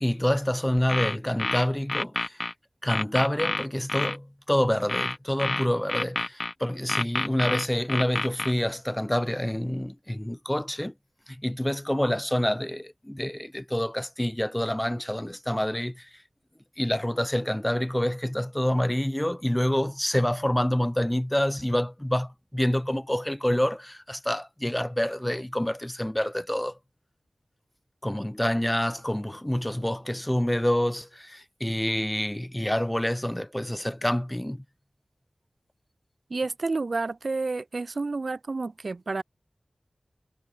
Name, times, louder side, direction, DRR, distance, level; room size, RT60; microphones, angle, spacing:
voice 1, 0.0-2.4 2.8-10.9 11.3-16.1 16.8-26.8 28.0-34.6, left 1 dB, 10° left, 0.4 m, -27 dB
sound 1, 0.8-2.5 2.9-4.2 4.9-6.5 6.9-8.5, left 2 dB, 40° left, 0.9 m, -28 dB
voice 2, 36.3-39.2, right 3 dB, 70° right, 1.9 m, -30 dB
wide cardioid pair, 50°, 0 cm